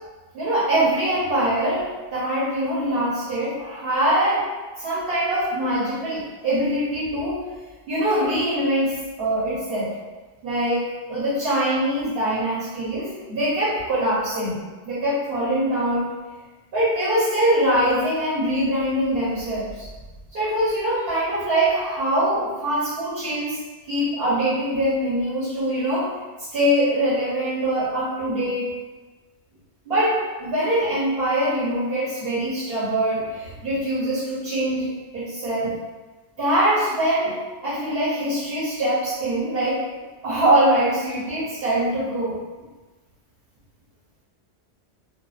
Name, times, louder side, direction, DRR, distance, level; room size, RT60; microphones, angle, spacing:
voice 1, 0.3-4.4 4.8-7.4 7.9-9.9 10.4-10.8 11.1-16.1 16.7-19.8 20.3-23.6 23.9-26.1 26.5-28.7 29.9-35.8 36.4-37.3 37.6-39.8 40.2-42.4, right 1 dB, 60° right, -10 dB, 1.0 m, -23 dB
2.5 x 2.2 x 2.3 m, 1.2 s
omnidirectional pair, 1.1 m